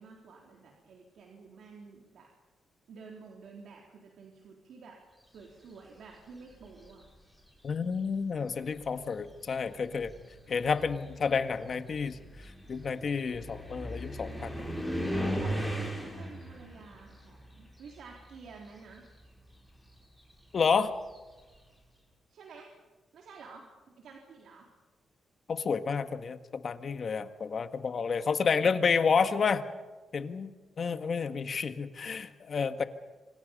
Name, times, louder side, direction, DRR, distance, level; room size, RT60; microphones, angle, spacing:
voice 1, 0.0-2.3 2.9-5.0 5.3-7.0 15.4-19.0 22.3-22.7 23.1-24.7 28.6-28.9, right 5 dB, 80° right, 0 dB, 3.8 m, -50 dB
sound 1, 6.5-7.0 8.0-8.1 8.7-18.6 18.9-21.5, equal, 5° right, 6.7 m, -38 dB
voice 2, 7.6-10.1 10.5-12.2 12.7-14.5 20.5-20.9 25.5-29.6 30.1-30.5 30.8-32.8, left 5 dB, 45° left, 9 dB, 1.7 m, -30 dB
27.0 x 26.0 x 5.4 m, 1.3 s
cardioid pair, 120°, 0 cm